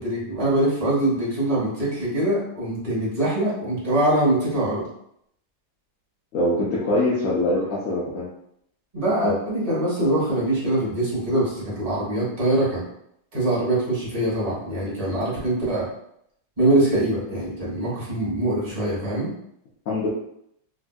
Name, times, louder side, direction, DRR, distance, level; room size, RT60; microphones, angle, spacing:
voice 1, 0.0-4.9 8.9-12.8 13.3-15.8 16.6-19.3, right 1 dB, 25° right, -7 dB, 1.1 m, -23 dB
voice 2, 6.3-8.2 19.9-20.1, left 1 dB, 65° left, -7 dB, 1.0 m, -23 dB
3.4 x 2.5 x 2.2 m, 0.73 s
omnidirectional pair, 1.7 m